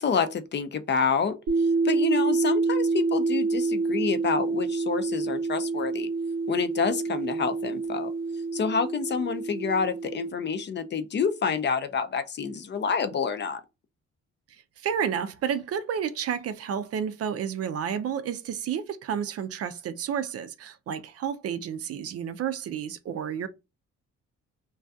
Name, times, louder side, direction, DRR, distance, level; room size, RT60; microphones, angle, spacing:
voice 1, 0.0-1.4 1.8-6.1 6.5-8.1 8.5-13.6, left 6 dB, 40° left, 0.4 m, -28 dB
sound 1, 1.5-10.3, right 4 dB, 85° right, 0.7 m, -27 dB
voice 2, 14.5-23.5, right 8 dB, 55° right, 0.4 m, -31 dB
2.3 x 2.3 x 2.5 m
cardioid pair, 90°, 30 cm